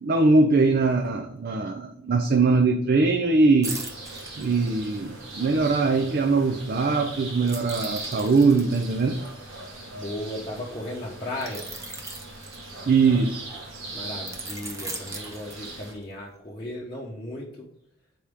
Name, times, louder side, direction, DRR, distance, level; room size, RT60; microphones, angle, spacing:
voice 1, 0.0-3.7 4.4-9.2 12.9-13.6, right 3 dB, 50° right, 5 dB, 0.5 m, -21 dB
sound 1, 3.6-5.2 7.5-10.2 11.4-13.3 14.3-16.1 16.5-16.7, right 2 dB, 15° right, 0.8 m, -39 dB
sound 2, 3.6-15.9, right 2 dB, 80° right, 1.5 m, -40 dB
voice 2, 9.9-11.7 13.9-17.7, left 1 dB, 25° left, -6 dB, 0.8 m, -35 dB
6.5 x 4.3 x 3.5 m, 0.70 s
head